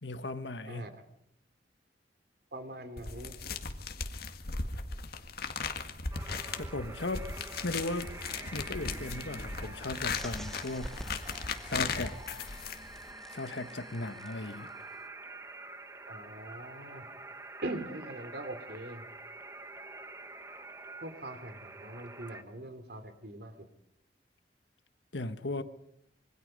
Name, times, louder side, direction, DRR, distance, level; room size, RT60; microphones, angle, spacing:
voice 1, 0.0-0.9 6.6-7.3 7.6-8.1 8.5-11.0 11.6-12.2 13.3-14.7 25.1-25.6, left 2 dB, 75° left, 1.5 m, -37 dB
voice 2, 2.5-3.5 16.1-17.1 17.6-19.1 21.0-23.7, right 1 dB, 60° right, 3.1 m, -42 dB
Peeling a naartjie, 3.0-13.1, left 4 dB, 60° left, 2.0 m, -37 dB
sound 1, 6.1-22.4, right 2 dB, 15° right, 1.4 m, -47 dB
sound 2, 10.1-14.9, equal, ahead, 1.2 m, -49 dB
26.0 x 23.5 x 5.4 m
head